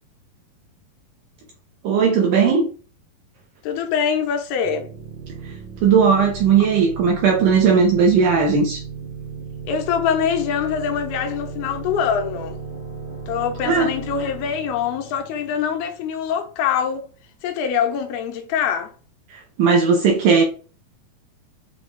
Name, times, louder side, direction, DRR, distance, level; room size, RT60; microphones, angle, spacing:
voice 1, 1.8-2.7 5.4-5.5 5.8-8.8 13.6-13.9 19.3-20.4, right 5 dB, 80° right, 1.9 m, -17 dB
voice 2, 3.6-4.9 9.7-12.6 13.3-17.1 17.4-18.9, left 7 dB, 80° left, 2.6 m, -24 dB
sound 1, 4.6-16.2, right 5 dB, 50° right, 1.4 m, -35 dB
6.6 x 2.4 x 3.2 m
omnidirectional pair, 4.4 m